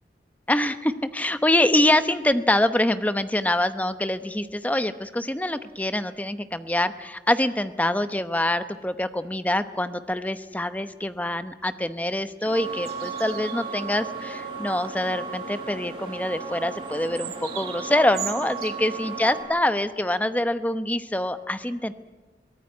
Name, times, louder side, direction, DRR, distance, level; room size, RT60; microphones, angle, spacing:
voice 1, 0.5-21.9, left 1 dB, 10° left, 11 dB, 0.8 m, -25 dB
sound 1, 12.4-19.4, right 4 dB, 30° right, 6.1 m, -35 dB
sound 2, 12.4-13.8 14.2-14.4 14.7-15.3 16.8-18.7, right 11 dB, 60° right, 2.6 m, -39 dB
23.0 x 18.0 x 9.5 m, 1.2 s
head